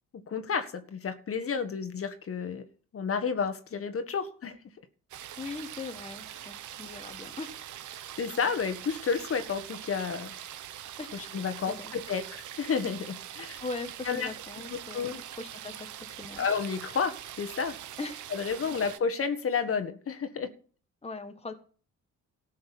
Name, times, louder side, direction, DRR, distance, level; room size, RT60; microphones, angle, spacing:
voice 1, 0.3-2.6 2.9-4.5 6.4-6.5 8.2-10.3 11.1-13.6 14.1-14.3 14.7-15.2 16.4-17.8 18.3-20.5, left 6 dB, 50° left, 1.6 m, -31 dB
sound 1, 5.1-19.0, right 11 dB, 75° right, 1.2 m, -43 dB
voice 2, 5.4-7.5 11.0-11.2 11.7-11.9 13.6-16.4 18.0-18.2 21.0-21.5, left 3 dB, 20° left, 1.5 m, -40 dB
14.0 x 6.4 x 8.4 m
cardioid pair, 90°, 30 cm